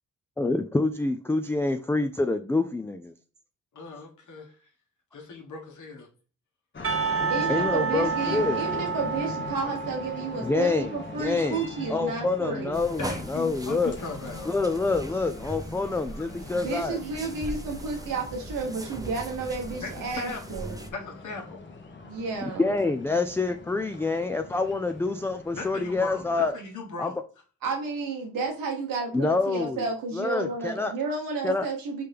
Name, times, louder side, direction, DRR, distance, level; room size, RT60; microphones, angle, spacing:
voice 1, 0.4-3.1 7.2-8.6 10.4-11.6 11.9-14.0 14.5-17.0 22.6-26.5 27.0-27.1 29.1-29.8 30.1-30.9 31.4-31.7, left 3 dB, 10° left, 0.3 m, -27 dB
voice 2, 3.7-4.5 5.1-6.1 13.0-14.6 16.1-16.3 19.8-21.6 25.5-27.2, left 4 dB, 65° left, 1.3 m, -38 dB
sound 1, 6.7-26.5, left 3 dB, 35° left, 1.0 m, -41 dB
Percussion, 6.8-11.7, right 6 dB, 40° right, 0.8 m, -30 dB
voice 3, 7.3-12.8 16.5-20.7 22.0-22.7 27.6-32.0, right 4 dB, 85° right, 1.2 m, -32 dB
sound 2, 12.7-20.9, right 2 dB, 10° right, 0.7 m, -40 dB
4.3 x 3.4 x 3.4 m
supercardioid pair, 45°, 33 cm